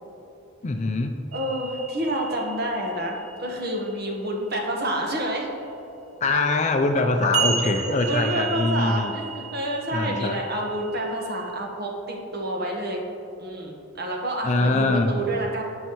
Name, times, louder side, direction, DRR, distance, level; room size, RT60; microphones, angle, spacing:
voice 1, 0.6-1.2 6.2-9.1 9.9-10.4 14.4-15.5, left 2 dB, 35° left, 6 dB, 0.4 m, -23 dB
voice 2, 1.3-5.5 6.3-6.4 7.8-13.0 13.4-15.6, right 1 dB, 45° right, 0 dB, 1.3 m, -28 dB
sound 1, 1.3-4.5 7.3-11.6, right 6 dB, 80° right, 0.9 m, -34 dB
16.5 x 5.6 x 3.1 m, 2.9 s
head